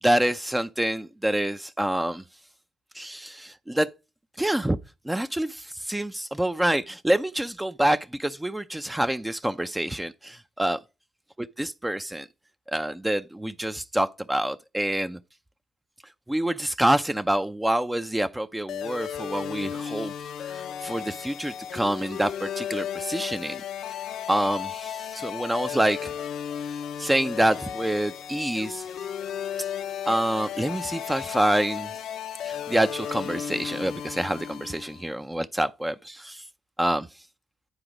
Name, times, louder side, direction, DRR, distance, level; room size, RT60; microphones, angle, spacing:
voice 1, 0.0-2.2 2.9-3.9 4.4-4.8 5.0-10.8 11.4-12.3 12.7-15.2 16.3-20.1 20.4-23.6 24.3-26.1 27.0-28.9 29.6-29.7 30.0-32.0 32.4-36.4 36.8-37.1, right 1 dB, 10° right, 0.4 m, -27 dB
sound 1, 18.7-35.1, left 9 dB, 75° left, 0.6 m, -34 dB
9.7 x 3.8 x 5.0 m
cardioid pair, 90°, 0 cm